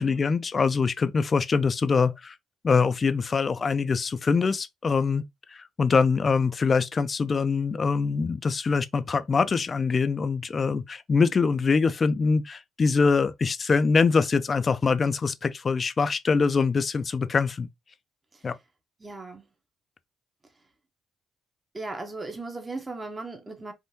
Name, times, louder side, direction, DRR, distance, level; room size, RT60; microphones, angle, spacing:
voice 1, 0.0-2.3 2.6-5.2 5.5-17.7 18.4-18.5, left 5 dB, 40° left, 0.4 m, -24 dB
voice 2, 19.0-19.5 21.7-23.7, right 3 dB, 25° right, 0.8 m, -37 dB
3.6 x 2.6 x 2.7 m
cardioid pair, 90°, 0 cm